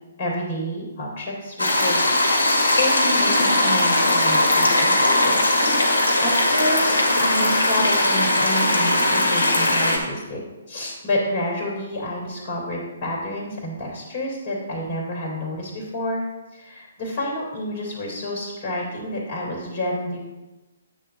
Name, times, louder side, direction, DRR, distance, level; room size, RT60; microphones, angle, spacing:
voice 1, 0.2-2.1 2.7-5.4 5.9-10.4 10.7-16.2 16.5-20.2, left 1 dB, 35° left, -4 dB, 2.9 m, -29 dB
sound 1, 1.6-10.0, left 1 dB, 75° left, 1.8 m, -19 dB
9.0 x 3.9 x 6.6 m, 1.1 s
figure-of-eight pair, 130°, 0 cm